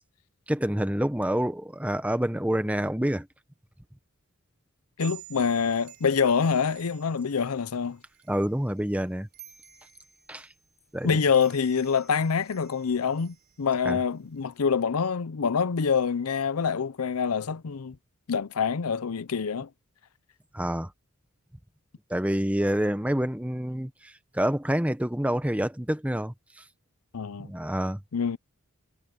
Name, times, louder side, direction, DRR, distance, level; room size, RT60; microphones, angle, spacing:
voice 1, 0.5-3.3 8.3-9.3 10.3-10.5 10.9-11.2 13.8-14.0 20.5-20.9 22.1-26.3 27.4-28.0, equal, 5° right, 1.0 m, -27 dB
voice 2, 5.0-8.0 11.0-18.0 18.3-19.7 27.1-27.5 28.1-28.4, left 6 dB, 80° left, 0.6 m, -26 dB
sound 1, 5.0-14.6, right 14 dB, 45° right, 3.5 m, -52 dB
head